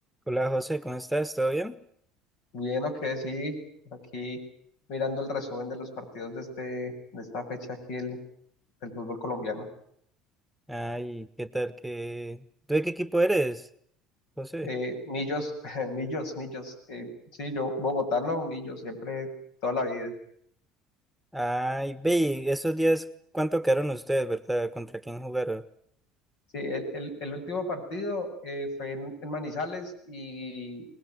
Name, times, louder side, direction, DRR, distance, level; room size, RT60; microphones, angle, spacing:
voice 1, 0.3-1.8 10.7-13.7 14.4-14.7 21.3-23.1 23.3-25.6, right 1 dB, ahead, 13 dB, 1.3 m, -28 dB
voice 2, 2.5-3.5 3.9-4.4 4.9-8.2 8.8-9.7 14.6-17.1 17.4-19.3 19.6-20.1 26.5-30.9, left 2 dB, 75° left, 6 dB, 7.7 m, -33 dB
25.5 x 20.0 x 9.4 m, 0.68 s
supercardioid pair, 85°, 0 cm